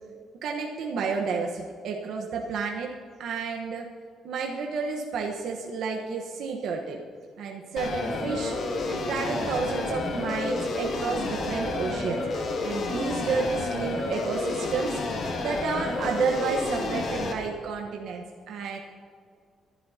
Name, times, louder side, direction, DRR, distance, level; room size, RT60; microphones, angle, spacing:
voice 1, 0.4-2.9 3.2-3.9 4.2-7.0 7.4-8.5 8.9-12.2 12.6-15.0 15.4-18.8, right 5 dB, 80° right, 0 dB, 1.2 m, -31 dB
sound 1, 7.8-17.3, left 2 dB, 60° left, 2.2 m, -30 dB
25.0 x 11.5 x 2.9 m, 2.2 s
cardioid pair, 90°, 0 cm